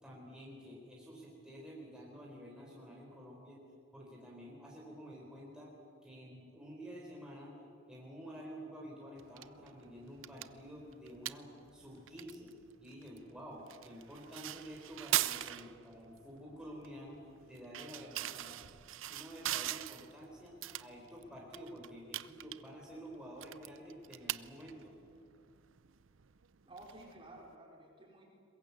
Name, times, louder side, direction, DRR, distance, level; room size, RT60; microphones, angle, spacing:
voice 1, 0.0-3.6 3.9-5.7 6.0-7.5 7.9-12.5 12.8-18.6 19.1-24.9, equal, 5° right, -4 dB, 3.8 m, -50 dB
sound 1, 9.2-27.5, right 13 dB, 75° right, 0.6 m, -43 dB
voice 2, 26.6-28.3, right 1 dB, 25° right, -1 dB, 4.6 m, -53 dB
22.5 x 21.5 x 8.2 m, 2.4 s
head